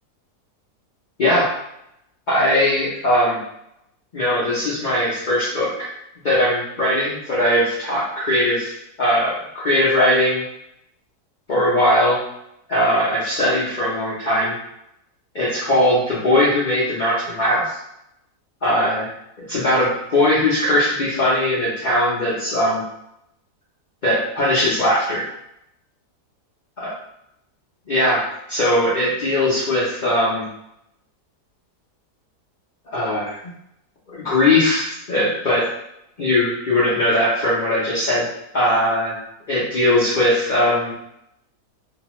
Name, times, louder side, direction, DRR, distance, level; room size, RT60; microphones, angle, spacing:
voice 1, 2.3-3.4 4.1-5.9 6.2-10.4 11.5-12.2 12.7-14.5 15.3-17.8 18.6-19.1 19.5-22.8 24.0-25.2 26.8-26.9 27.9-30.5 32.9-33.4 34.1-35.7 36.2-38.3 38.5-39.2 39.5-40.9, left 1 dB, 50° left, -9 dB, 0.5 m, -19 dB
2.8 x 2.2 x 3.0 m, 0.79 s
omnidirectional pair, 1.7 m